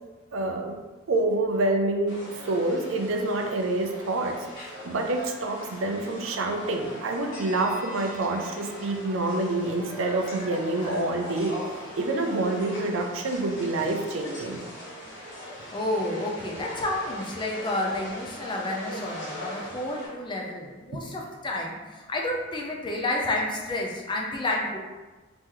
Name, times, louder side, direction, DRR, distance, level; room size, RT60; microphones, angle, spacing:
voice 1, 0.3-0.8 1.1-11.6 12.0-14.6, right 2 dB, 75° right, 4 dB, 0.5 m, -27 dB
sound 1, 2.1-20.1, equal, 60° left, 1.2 m, -40 dB
voice 2, 15.7-24.8, left 1 dB, 25° left, -1 dB, 0.5 m, -30 dB
3.0 x 2.9 x 3.7 m, 1.2 s
head